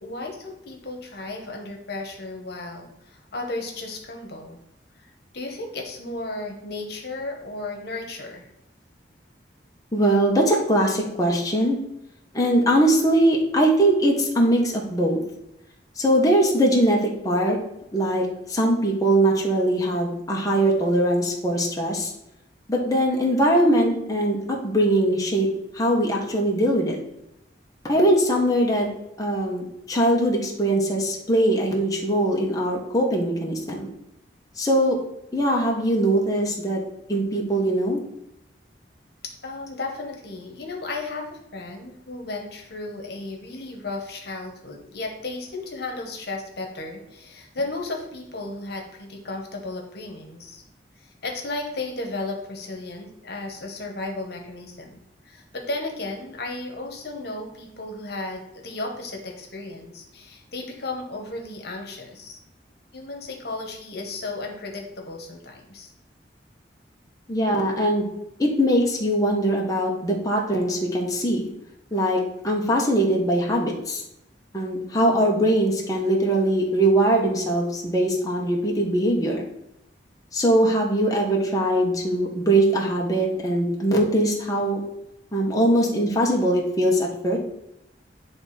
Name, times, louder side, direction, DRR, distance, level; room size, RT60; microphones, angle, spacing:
voice 1, 0.0-4.6 5.0-5.1 5.3-8.5 39.4-50.6 51.0-55.0 55.2-62.4 62.9-65.9, left 2 dB, 65° left, 2 dB, 1.3 m, -34 dB
voice 2, 9.9-11.8 12.3-15.2 16.0-17.0 17.2-17.6 17.9-22.1 22.7-25.5 25.7-27.0 27.9-28.9 29.2-33.9 34.6-35.0 35.3-36.8 37.1-38.0 67.3-68.1 68.4-71.5 71.9-74.0 74.5-79.4 80.3-84.8 85.3-87.4, right 1 dB, 20° left, -2 dB, 1.1 m, -21 dB
9.4 x 3.5 x 4.3 m, 0.83 s
head